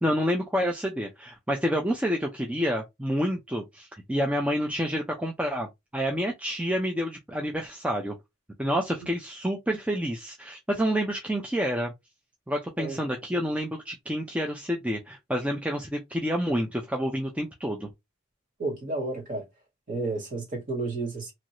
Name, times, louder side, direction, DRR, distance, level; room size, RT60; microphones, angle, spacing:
voice 1, 0.0-8.1 8.6-11.9 12.5-17.9, equal, 5° right, 0.4 m, -28 dB
voice 2, 18.6-19.4 19.9-21.3, right 2 dB, 40° right, 1.6 m, -31 dB
3.1 x 2.5 x 2.9 m
head